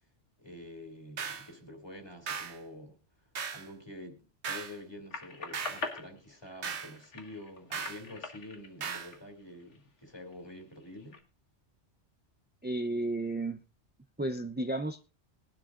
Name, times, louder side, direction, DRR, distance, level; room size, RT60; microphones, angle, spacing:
voice 1, 0.4-3.0 3.5-4.2 4.4-11.2, left 1 dB, 20° left, 4 dB, 2.9 m, -47 dB
sound 1, 1.2-1.5 2.3-2.6 3.3-3.7 4.4-4.8 5.5-5.9 6.6-6.9 7.7-8.0 8.8-9.1, right 6 dB, 70° right, 1.4 m, -37 dB
sound 2, 5.1-9.8 10.3-11.2, left 4 dB, 85° left, 2.2 m, -43 dB
voice 2, 12.6-13.6 14.2-15.1, right 2 dB, 15° right, 8 dB, 0.4 m, -33 dB
21.5 x 11.5 x 2.5 m, 0.28 s
omnidirectional pair, 1.2 m